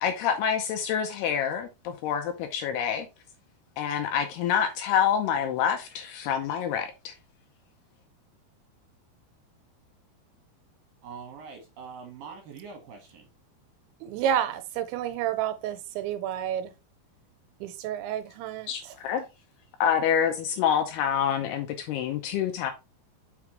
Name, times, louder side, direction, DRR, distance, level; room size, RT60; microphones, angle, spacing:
voice 1, 0.0-3.1 3.8-7.1 18.7-19.2 19.8-22.7, left 8 dB, 75° left, 2.5 m, -27 dB
voice 2, 11.0-13.2, right 5 dB, 70° right, 2.3 m, -43 dB
voice 3, 14.0-16.7 17.6-18.7, right 10 dB, 90° right, 3.0 m, -30 dB
5.9 x 5.6 x 3.1 m
omnidirectional pair, 5.2 m